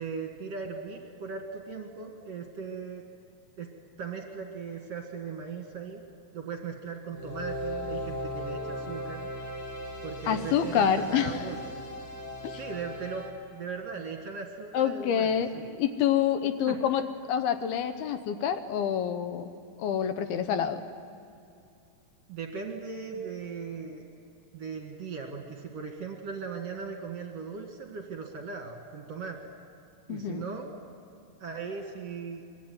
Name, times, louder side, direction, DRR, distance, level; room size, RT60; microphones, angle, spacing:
voice 1, 0.0-3.0 3.6-3.7 4.0-6.0 6.3-9.3 10.0-11.6 12.6-15.7 16.7-16.8 22.3-24.0 24.5-29.5 30.1-30.7 31.4-32.4, right 5 dB, 50° right, 2 dB, 2.3 m, -38 dB
sound 1, 7.1-13.3, left 1 dB, 30° left, 2.5 m, -37 dB
voice 2, 10.3-11.4 12.4-12.6 14.7-15.5 15.7-17.0 17.3-19.5 19.8-20.8 30.1-30.4, left 8 dB, 75° left, 9 dB, 2.7 m, -27 dB
25.0 x 22.0 x 9.5 m, 2.4 s
omnidirectional pair, 4.8 m